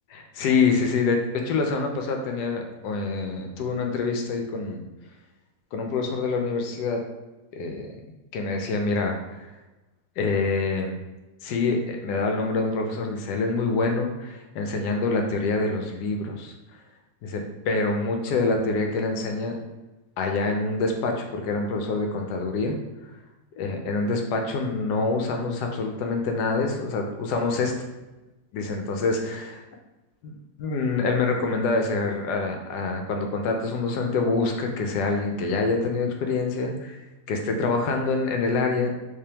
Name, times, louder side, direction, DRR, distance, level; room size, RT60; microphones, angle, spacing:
voice 1, 0.1-4.8 5.7-7.0 7.5-7.9 8.3-9.5 10.2-11.0 11.4-16.5 17.2-19.6 20.2-22.7 23.6-27.7 28.5-29.6 30.2-37.0 37.3-38.9, left 3 dB, 75° left, 3 dB, 1.1 m, -26 dB
3.5 x 3.3 x 2.8 m, 1.0 s
omnidirectional pair, 1.8 m